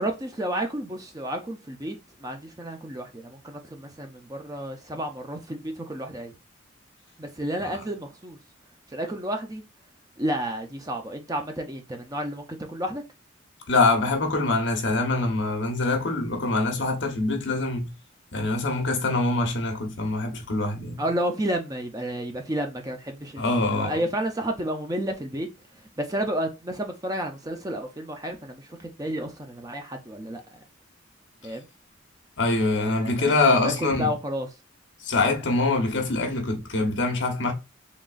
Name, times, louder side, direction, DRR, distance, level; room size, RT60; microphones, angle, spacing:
voice 1, 0.0-6.3 7.2-8.4 8.9-9.6 10.2-13.0 21.0-25.5 26.0-30.4 31.4-31.7 32.8-34.5, right 1 dB, 20° right, 0.4 m, -31 dB
voice 2, 13.7-17.9 18.3-21.0 23.4-24.0 32.4-34.1 35.0-37.5, left 2 dB, 65° left, 0.9 m, -24 dB
3.8 x 3.0 x 2.4 m
head